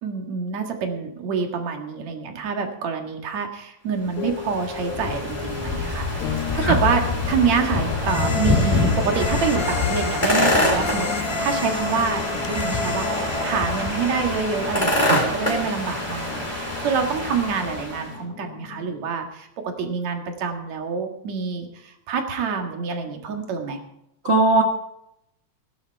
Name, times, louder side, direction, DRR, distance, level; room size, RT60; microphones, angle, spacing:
voice 1, 0.0-11.1 11.4-23.8, right 6 dB, 70° right, 4 dB, 3.0 m, -27 dB
sound 1, 1.3-1.7 4.0-19.1, left 9 dB, 80° left, 2.1 m, -36 dB
sound 2, 4.1-18.1, left 2 dB, 10° left, 4.0 m, -25 dB
sound 3, 8.0-14.7, left 3 dB, 55° left, 3.2 m, -32 dB
voice 2, 24.2-24.6, right 2 dB, 45° right, 0 dB, 0.8 m, -19 dB
16.5 x 11.5 x 4.6 m, 0.81 s
omnidirectional pair, 3.3 m